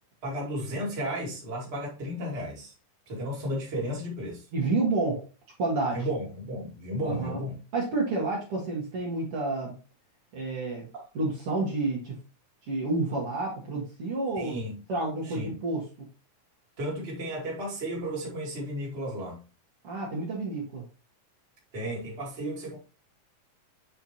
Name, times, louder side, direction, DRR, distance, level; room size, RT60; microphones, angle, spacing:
voice 1, 0.2-2.7 3.1-4.4 5.9-7.6 10.9-11.1 14.4-14.7 15.3-15.5 16.8-19.4 21.7-22.8, equal, 20° right, 2.0 m, -33 dB
voice 2, 4.5-5.3 5.6-6.0 7.0-7.4 7.7-9.7 10.3-10.9 11.1-12.2 12.7-14.6 14.9-15.8 19.8-20.8, right 3 dB, 55° right, 2.3 m, -29 dB
7.1 x 4.6 x 2.9 m
omnidirectional pair, 3.5 m